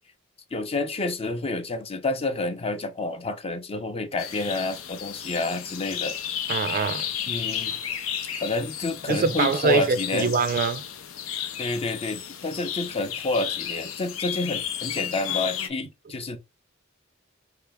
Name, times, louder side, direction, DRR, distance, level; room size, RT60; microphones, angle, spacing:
voice 1, 0.5-6.1 7.3-7.8 8.4-10.3 11.6-16.4, left 2 dB, 30° left, 0.6 m, -29 dB
sound 1, 4.2-15.7, left 9 dB, 85° left, 0.6 m, -33 dB
voice 2, 6.5-7.1 9.1-10.8, right 5 dB, 45° right, 0.4 m, -24 dB
3.3 x 2.9 x 3.4 m
head